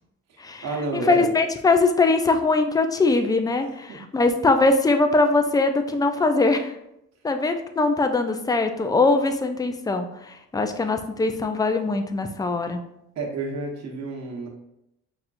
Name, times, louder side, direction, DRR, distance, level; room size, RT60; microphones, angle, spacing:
voice 1, 0.3-1.3 3.6-4.0 13.2-14.5, right 3 dB, 60° right, 1 dB, 1.0 m, -31 dB
voice 2, 0.9-6.7 7.2-12.8, left 3 dB, 15° left, 6 dB, 0.3 m, -21 dB
5.7 x 2.4 x 2.5 m, 0.82 s
cardioid pair, 90°, 30 cm